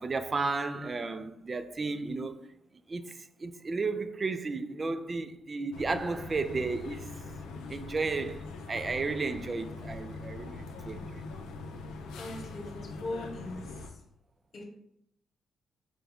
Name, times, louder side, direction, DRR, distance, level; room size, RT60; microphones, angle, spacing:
voice 1, 0.0-2.5 2.9-7.2 7.7-11.2, right 3 dB, 35° right, 0.4 m, -33 dB
sound 1, 5.7-13.9, left 3 dB, 85° left, 0.5 m, -42 dB
voice 2, 12.2-14.0 14.5-14.6, left 2 dB, 50° left, 1.2 m, -40 dB
5.1 x 2.3 x 3.4 m
supercardioid pair, 60°, 0 cm